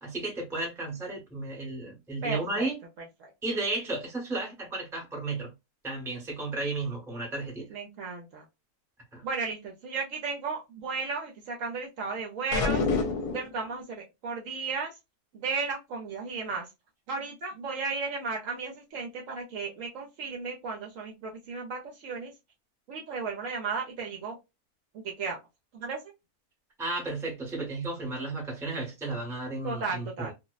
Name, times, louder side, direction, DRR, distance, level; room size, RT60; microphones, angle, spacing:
voice 1, 0.0-2.8 3.4-5.5 5.8-7.7 9.1-9.2 26.8-30.3, right 2 dB, 5° right, 0.6 m, -33 dB
voice 2, 2.2-2.7 3.2-3.3 7.7-8.4 9.2-12.8 13.3-15.0 15.3-16.7 17.1-22.3 22.9-24.4 24.9-25.4 25.7-26.1 29.6-30.3, right 4 dB, 65° right, 0.9 m, -34 dB
sound 1, 12.5-13.6, left 4 dB, 80° left, 1.1 m, -27 dB
2.7 x 2.0 x 2.3 m
omnidirectional pair, 1.6 m